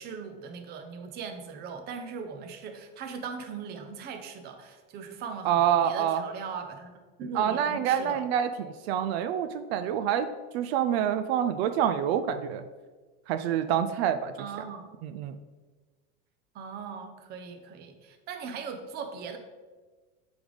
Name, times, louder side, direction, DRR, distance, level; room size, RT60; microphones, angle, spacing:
voice 1, 0.0-6.9 7.2-8.2 14.4-14.9 16.5-19.4, right 6 dB, 30° right, 6 dB, 0.6 m, -39 dB
voice 2, 5.5-6.2 7.3-10.3 10.5-12.6 13.3-14.3 15.0-15.4, right 9 dB, 75° right, 10 dB, 0.5 m, -27 dB
7.9 x 3.5 x 3.9 m, 1.3 s
supercardioid pair, 155°, 32 cm